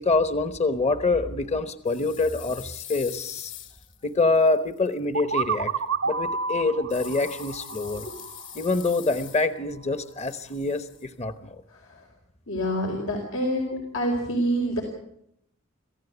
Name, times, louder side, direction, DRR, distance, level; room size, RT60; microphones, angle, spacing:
voice 1, 0.0-3.5 4.0-5.7 6.0-8.1 8.5-11.6, left 3 dB, 35° left, 11 dB, 1.0 m, -25 dB
sound 1, 1.9-4.9 6.9-9.7 10.0-11.0, left 11 dB, 70° left, 2.7 m, -43 dB
sound 2, 5.1-8.9, right 5 dB, 70° right, 0.8 m, -30 dB
voice 2, 11.7-12.1 12.5-14.8, equal, 90° left, 0 dB, 4.6 m, -27 dB
26.5 x 15.5 x 8.2 m, 0.75 s
head